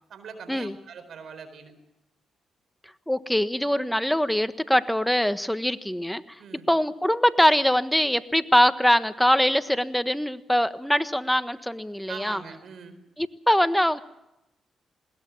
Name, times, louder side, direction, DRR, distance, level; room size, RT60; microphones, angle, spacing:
voice 1, 0.1-1.7 6.4-6.6 12.1-13.0, right 6 dB, 70° right, 10 dB, 4.5 m, -42 dB
voice 2, 3.1-6.4 6.7-12.4 13.2-14.0, equal, 5° left, 12 dB, 1.3 m, -23 dB
21.0 x 19.5 x 7.2 m, 0.89 s
supercardioid pair, 50°, 0 cm